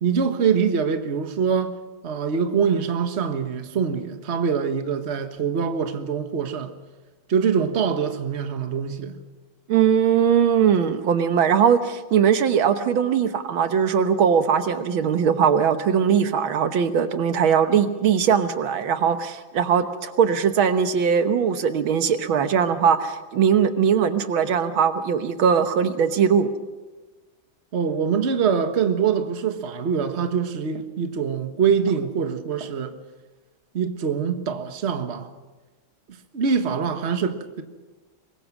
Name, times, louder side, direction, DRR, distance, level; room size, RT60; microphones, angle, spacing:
voice 1, 0.0-1.8 2.0-6.7 7.3-9.2 27.7-32.9 33.7-35.3 36.3-37.6, right 6 dB, 35° right, 1.4 m, -24 dB
voice 2, 9.7-26.5, right 7 dB, 80° right, 1.9 m, -20 dB
24.0 x 21.5 x 6.1 m
omnidirectional pair, 2.2 m